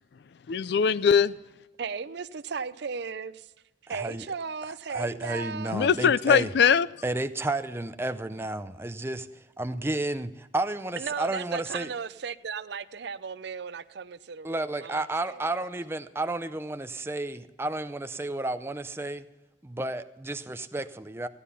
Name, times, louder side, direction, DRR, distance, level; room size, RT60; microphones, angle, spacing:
voice 1, 0.5-1.3 5.7-6.9, left 6 dB, 60° left, 0.4 m, -21 dB
voice 2, 1.8-3.5 3.9-5.8 11.0-15.0 15.3-15.5, right 5 dB, 60° right, 0.5 m, -36 dB
voice 3, 3.9-4.3 4.9-6.5 7.0-9.3 9.6-11.9 14.4-19.3 19.6-21.3, right 2 dB, 15° right, 0.5 m, -32 dB
15.5 x 10.0 x 5.6 m
head